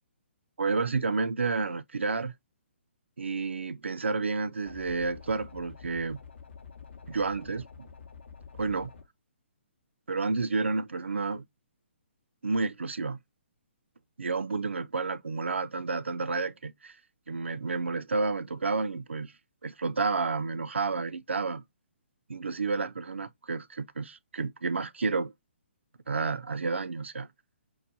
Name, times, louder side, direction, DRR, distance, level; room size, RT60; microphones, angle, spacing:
voice 1, 0.6-2.3 3.2-6.2 7.1-7.7 8.6-8.9 10.1-11.4 12.4-13.2 14.2-16.9 17.3-19.3 19.6-21.6 22.3-25.3 26.1-27.3, right 4 dB, 75° right, 0.4 m, -30 dB
sound 1, 4.7-9.0, left 6 dB, 65° left, 0.7 m, -48 dB
4.6 x 2.1 x 2.6 m
figure-of-eight pair, 130°, 7 cm